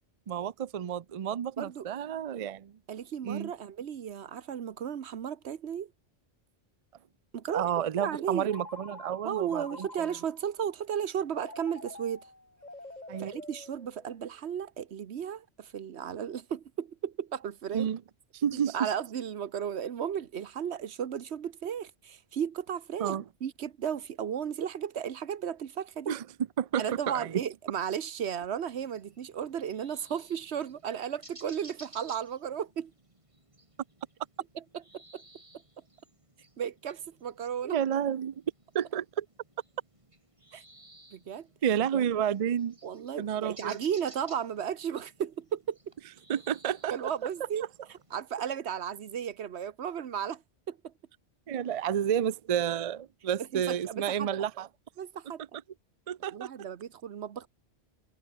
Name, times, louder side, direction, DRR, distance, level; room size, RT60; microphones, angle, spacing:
voice 1, 0.3-2.7 3.2-3.5 7.5-9.9 13.1-13.3 17.7-18.0 18.3-18.9 23.0-23.2 26.1-26.2 26.6-27.4 37.6-38.3 38.7-39.3 41.6-42.8 43.2-43.8 46.3-46.9 51.5-54.7 56.1-56.5, right 9 dB, 45° right, 0.5 m, -30 dB
voice 2, 1.6-1.9 2.9-5.9 7.3-8.5 9.2-12.2 13.2-17.9 18.5-23.2 23.4-26.1 26.8-32.9 34.5-35.2 36.6-37.8 40.5-40.6 41.1-41.5 42.8-45.8 46.9-47.6 47.9-50.4 50.7-50.9 53.4-54.3 55.0-55.4 56.3-57.5, right 8 dB, 80° right, 1.2 m, -34 dB
Telephone, 8.5-10.5 11.3-14.4, left 2 dB, 40° left, 3.6 m, -47 dB
sound 1, 28.7-48.2, right 1 dB, 30° right, 3.1 m, -57 dB
omnidirectional pair, 1.1 m